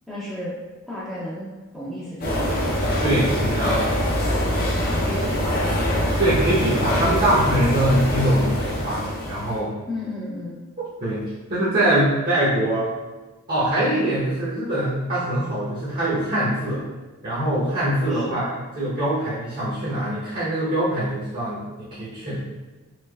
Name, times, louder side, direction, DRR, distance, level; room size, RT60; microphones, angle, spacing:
voice 1, 0.1-0.5 0.9-2.7 4.9-5.6 9.9-10.6 18.1-18.4, left 1 dB, ahead, -12 dB, 0.5 m, -33 dB
sound 1, 2.2-9.6, equal, 45° left, 0.6 m, -24 dB
voice 2, 3.0-3.9 6.2-9.7 10.8-11.2 11.5-12.9 13.5-16.8 17.2-18.5 18.8-22.4, right 1 dB, 45° right, -10 dB, 0.8 m, -23 dB
3.2 x 2.9 x 2.3 m, 1.2 s
head